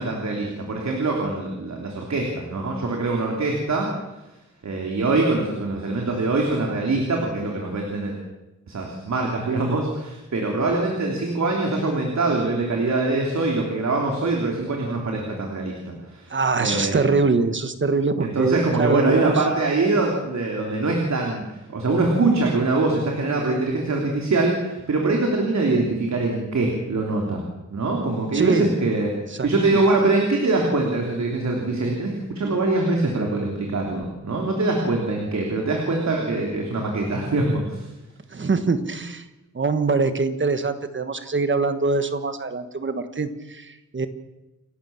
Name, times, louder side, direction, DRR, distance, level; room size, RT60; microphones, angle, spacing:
voice 1, 0.0-3.9 4.6-8.2 8.7-17.1 18.2-27.4 27.7-29.1 29.4-37.9, right 2 dB, 60° right, 0 dB, 3.4 m, -23 dB
voice 2, 16.3-19.3 28.3-28.7 29.4-29.5 38.3-39.2 39.5-44.1, right 4 dB, 40° right, 9 dB, 1.4 m, -23 dB
29.0 x 12.0 x 7.3 m, 1.0 s
wide cardioid pair, 150°, 31 cm